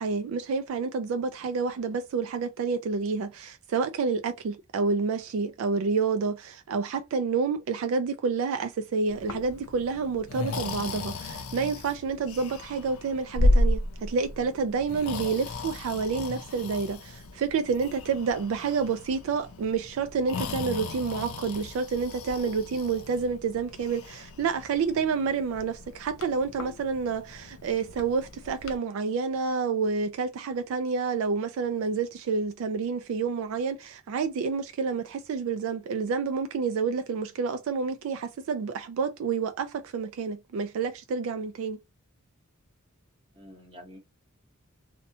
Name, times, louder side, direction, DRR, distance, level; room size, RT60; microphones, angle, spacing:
voice 1, 0.0-41.8, right 5 dB, 65° right, 0.3 m, -29 dB
Breathing, 9.1-28.8, left 1 dB, 70° left, 0.5 m, -33 dB
voice 2, 43.3-44.0, equal, 25° right, 1.0 m, -48 dB
2.7 x 2.1 x 2.7 m
head